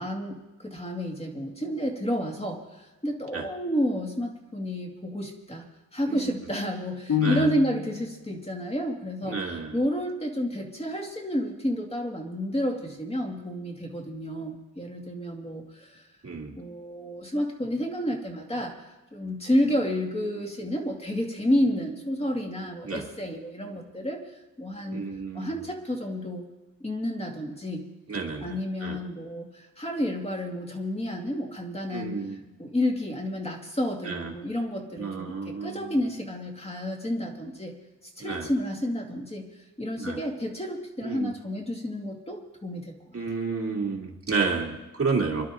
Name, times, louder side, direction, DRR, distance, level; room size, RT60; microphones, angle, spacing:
voice 1, 0.0-5.7 5.9-16.0 16.6-18.7 19.1-24.2 24.6-25.1 25.3-26.5 26.8-27.9 28.4-32.2 32.6-37.7 38.2-39.5 39.8-42.9, equal, 20° left, 1 dB, 2.5 m, -30 dB
sound 1, 7.1-8.1, left 9 dB, 65° left, 1.3 m, -27 dB
voice 2, 9.3-9.8 16.2-16.5 22.8-23.0 24.9-25.6 28.1-28.6 28.8-29.0 31.9-32.4 34.0-34.3 35.0-36.0 38.2-38.5 40.0-40.2 41.0-41.3 43.1-45.5, right 4 dB, 45° right, 0 dB, 2.6 m, -31 dB
28.0 x 12.0 x 3.8 m, 1.1 s
wide cardioid pair, 120°, 33 cm